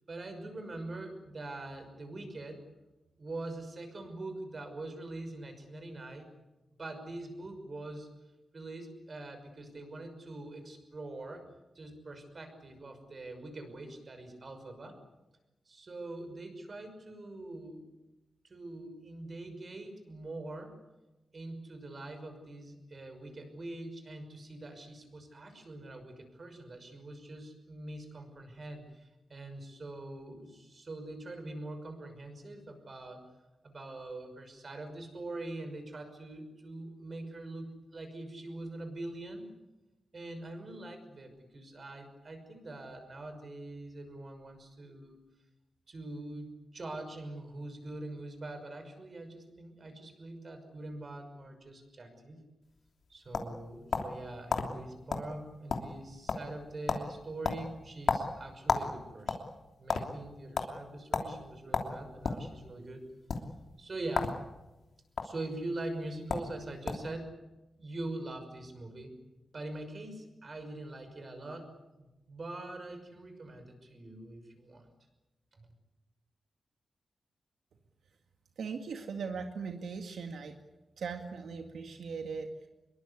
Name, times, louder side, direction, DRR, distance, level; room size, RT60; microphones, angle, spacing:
voice 1, 0.1-2.6 3.2-6.5 6.8-8.1 8.5-11.4 11.7-15.0 15.7-17.9 18.4-20.8 21.3-33.3 33.6-39.5 40.1-45.2 45.9-52.4 53.1-59.5 59.8-63.0 63.8-64.3 65.2-67.3 67.8-69.2 69.5-71.7 72.0-74.9 75.6-75.7, right 2 dB, 40° right, 7 dB, 5.9 m, -43 dB
sound 1, 52.8-54.2 54.5-54.7 55.1-55.3 55.5-56.0 56.3-56.6 56.9-57.1 57.4-58.9 59.2-60.0 60.5-60.7 61.1-61.3 61.7-62.4 63.2-63.4 64.1-64.4 64.7-65.2 66.0-66.1 66.3-66.5 66.9-67.1, left 5 dB, 65° left, 3.1 m, -31 dB
voice 2, 78.6-80.5 81.0-82.7, right 5 dB, 85° right, 4 dB, 2.1 m, -39 dB
25.5 x 22.5 x 8.3 m, 1.0 s
wide cardioid pair, 140°, 0 cm